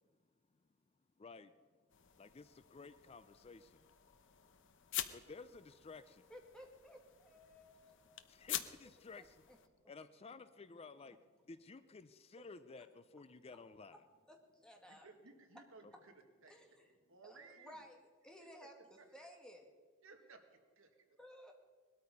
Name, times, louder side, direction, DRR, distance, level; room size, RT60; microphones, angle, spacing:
voice 1, 1.2-1.5 2.2-3.8 5.1-6.3 8.3-9.5 9.9-11.2 11.5-14.0 15.8-15.9, left 4 dB, 30° left, 13 dB, 0.4 m, -54 dB
sound 1, 1.9-9.7, left 11 dB, 60° left, 0.9 m, -48 dB
voice 2, 6.3-8.5 9.2-9.6 14.3-15.1 16.5-16.9 17.2-19.7 21.2-21.5, equal, 5° left, 1 dB, 2.0 m, -58 dB
voice 3, 14.9-16.1 16.4-16.5 17.1-17.8 18.4-19.1 20.0-21.2, right 3 dB, 65° right, 5 dB, 1.9 m, -60 dB
20.0 x 13.0 x 5.4 m, 1.5 s
head